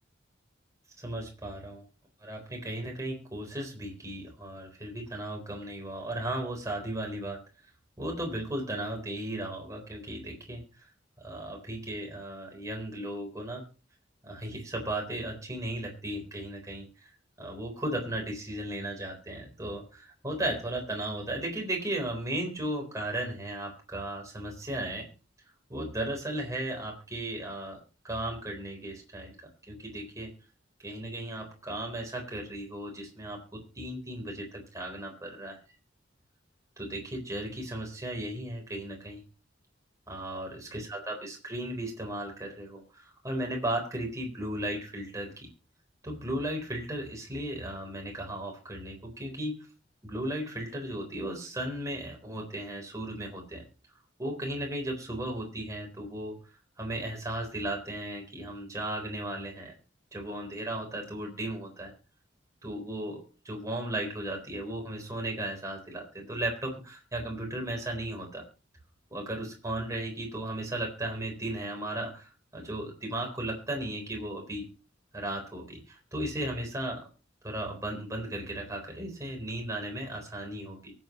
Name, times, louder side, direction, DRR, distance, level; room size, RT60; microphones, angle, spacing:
voice 1, 1.0-1.9 2.2-7.4 8.0-10.6 11.2-13.6 14.2-17.1 17.4-25.1 25.7-27.8 28.0-29.4 29.7-30.3 30.8-35.6 36.8-39.2 40.1-45.5 46.0-49.6 50.0-53.6 54.2-56.4 56.8-59.7 60.1-61.9 62.6-68.4 69.1-74.6 75.1-77.1 77.4-80.9, right 1 dB, 15° right, 1 dB, 3.8 m, -35 dB
23.5 x 8.0 x 3.0 m, 0.34 s
head